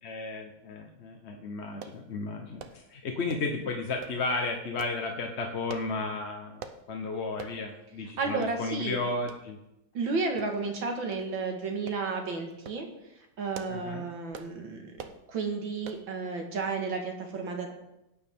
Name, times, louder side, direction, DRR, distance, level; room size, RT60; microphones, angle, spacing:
voice 1, 0.0-9.6 13.7-14.1, left 3 dB, 45° left, 2 dB, 1.0 m, -34 dB
sound 1, 1.8-2.0 2.6-2.8 3.3-3.6 4.0-4.2 4.8-5.0 5.7-5.9 6.6-6.8 7.4-7.6 8.0-8.1 8.4-8.6 9.3-9.4 10.4-10.8 11.1-11.3 11.9-12.0 12.5-12.8 13.3-13.8 14.3-14.5 15.0-15.2 15.8-16.1 16.6-16.7 17.0-17.1, right 6 dB, 55° right, 1.0 m, -44 dB
voice 2, 8.2-9.0 9.9-12.9 13.4-17.7, right 4 dB, 80° right, 3 dB, 2.4 m, -32 dB
17.5 x 9.4 x 3.6 m, 0.89 s
omnidirectional pair, 2.1 m